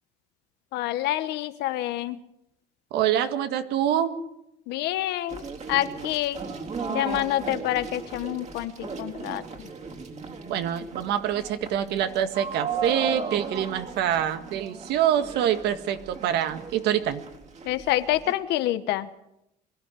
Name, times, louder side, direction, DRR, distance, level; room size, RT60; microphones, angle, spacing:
voice 1, 0.7-2.2 4.7-5.4 5.7-6.4 6.9-9.4 17.6-19.1, left 14 dB, 90° left, 12 dB, 1.3 m, -27 dB
voice 2, 2.9-4.2 10.5-17.2, right 10 dB, 85° right, 9 dB, 1.9 m, -25 dB
sound 1, 5.3-18.3, right 4 dB, 40° right, 3.6 m, -36 dB
23.0 x 13.0 x 9.2 m, 0.83 s
cardioid pair, 110°, 17 cm